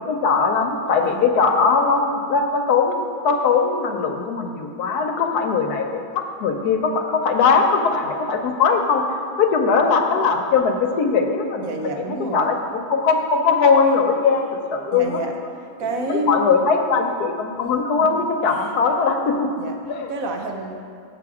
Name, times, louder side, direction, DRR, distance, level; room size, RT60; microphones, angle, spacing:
voice 1, 0.1-3.0 3.2-11.7 12.3-15.2 16.0-19.5 19.9-20.1, left 5 dB, 70° left, 4 dB, 1.2 m, -20 dB
voice 2, 11.6-12.5 14.9-15.3 15.8-16.5 18.0-18.2 18.5-18.7 19.6-19.7 20.1-20.7, right 1 dB, 60° right, 3 dB, 1.0 m, -28 dB
7.6 x 7.0 x 4.8 m, 2.5 s
omnidirectional pair, 1.8 m